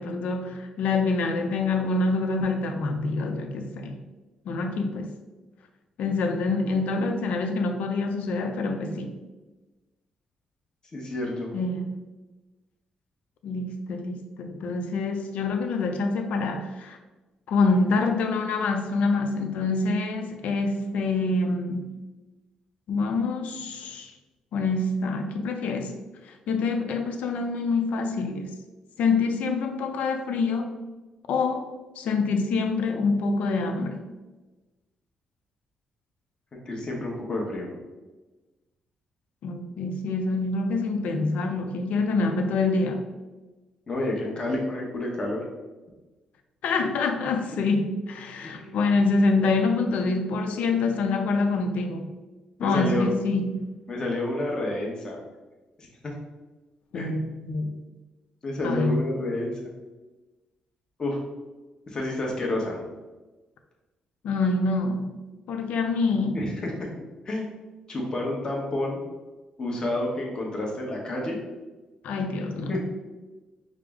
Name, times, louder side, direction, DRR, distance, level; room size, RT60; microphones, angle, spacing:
voice 1, 0.0-4.0 4.5-5.1 6.0-9.1 11.5-12.0 13.4-17.0 17.5-22.0 22.9-24.1 24.5-25.9 26.2-28.5 29.0-30.7 31.3-31.7 32.0-34.0 39.4-43.0 46.6-52.1 52.6-53.6 56.9-57.8 58.6-59.0 64.2-65.2 65.5-66.4 72.0-72.7, left 3 dB, 80° left, 5 dB, 0.5 m, -26 dB
voice 2, 10.9-11.5 36.5-37.7 43.9-45.4 48.4-48.8 52.6-53.1 53.9-55.2 55.8-55.9 56.9-57.1 58.4-59.6 61.0-61.2 61.9-62.8 66.3-66.7 67.2-67.5 67.9-69.0 69.6-71.4 72.7-72.8, left 1 dB, 35° left, -2 dB, 1.0 m, -29 dB
4.9 x 2.0 x 3.5 m, 1.2 s
cardioid pair, 105°, 2 cm